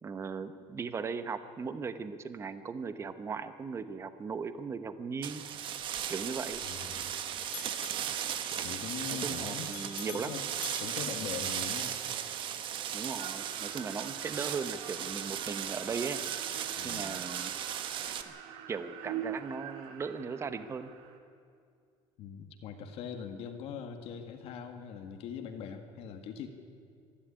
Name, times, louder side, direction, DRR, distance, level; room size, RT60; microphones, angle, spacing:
voice 1, 0.0-5.4 6.1-6.6 9.1-10.3 12.9-16.2 16.8-17.5 18.3-18.4 18.7-20.9, right 5 dB, 25° right, 11 dB, 1.0 m, -38 dB
sound 1, 5.2-18.2, right 9 dB, 45° right, 1.3 m, -36 dB
Bell, 5.8-7.2 7.4-11.9, left 16 dB, 80° left, 1.1 m, -50 dB
voice 2, 6.6-7.3 8.6-9.7 10.1-10.5 10.8-12.0 16.8-17.2 22.2-26.5, left 7 dB, 60° left, 6 dB, 1.8 m, -42 dB
sound 2, 13.1-21.2, right 9 dB, 75° right, 1.9 m, -45 dB
25.0 x 11.5 x 10.0 m, 2.3 s
cardioid pair, 145°, 11 cm